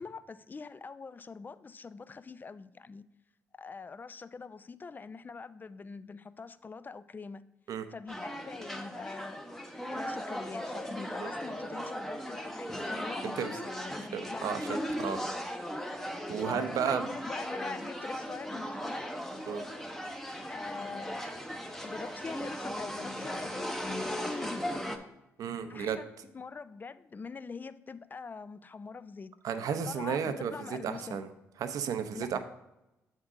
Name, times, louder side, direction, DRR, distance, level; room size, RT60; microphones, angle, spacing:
voice 1, 0.0-3.0 3.6-7.4 7.9-9.4 9.9-15.1 16.5-19.1 20.5-21.3 21.8-25.1 25.7-26.1 26.3-29.3 29.8-31.2 32.1-32.4, left 4 dB, 30° left, 0.4 m, -43 dB
sound 1, 8.1-25.0, equal, 5° left, 0.8 m, -37 dB
voice 2, 14.1-15.2 16.3-17.1 19.5-19.6 25.4-26.0 29.4-30.5 30.8-31.3 31.6-32.4, right 7 dB, 65° right, 0.6 m, -33 dB
7.1 x 3.7 x 4.8 m
supercardioid pair, 55°, 6 cm